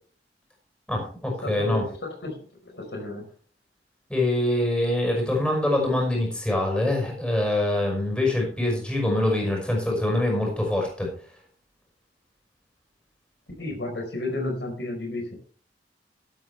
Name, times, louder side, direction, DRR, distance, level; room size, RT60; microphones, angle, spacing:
voice 1, 0.9-1.8 4.1-11.1, left 1 dB, 5° left, 0 dB, 5.7 m, -24 dB
voice 2, 1.4-3.2 13.6-15.3, left 2 dB, 80° left, 2 dB, 4.6 m, -32 dB
13.0 x 12.5 x 3.4 m, 0.43 s
head